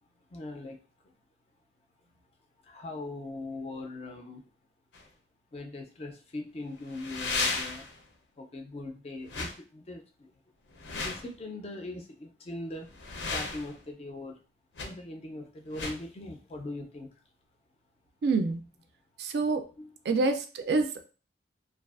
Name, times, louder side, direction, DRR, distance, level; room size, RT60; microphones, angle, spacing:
voice 1, 0.3-0.8 2.6-4.5 5.5-7.9 8.4-10.3 10.8-12.9 13.3-14.4 14.8-17.1 19.8-19.9, left 2 dB, 35° left, 4 dB, 0.4 m, -40 dB
sound 1, 4.9-5.0 6.9-8.0 9.3-9.5 10.7-11.3 12.8-13.8 14.7-14.9 15.7-16.0, left 3 dB, 85° left, 0.6 m, -34 dB
voice 2, 18.2-18.6 19.2-19.6 20.0-21.0, right 3 dB, 60° right, 8 dB, 0.3 m, -27 dB
2.5 x 2.3 x 2.3 m, 0.36 s
head